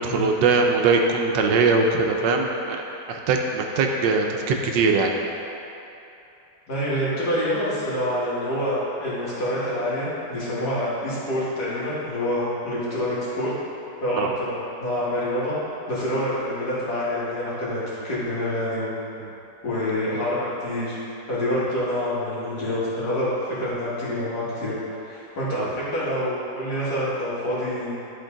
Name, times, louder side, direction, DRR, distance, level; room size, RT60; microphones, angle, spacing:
voice 1, 0.0-2.8 3.1-5.1 14.1-14.3 25.6-25.7, right 4 dB, 75° right, 2 dB, 1.2 m, -21 dB
voice 2, 6.7-13.5 14.0-15.5 15.9-18.9 19.6-21.0 21.3-24.7 25.0-27.9, left 1 dB, 60° left, -9 dB, 2.4 m, -26 dB
11.0 x 4.5 x 3.8 m, 2.8 s
omnidirectional pair, 2.0 m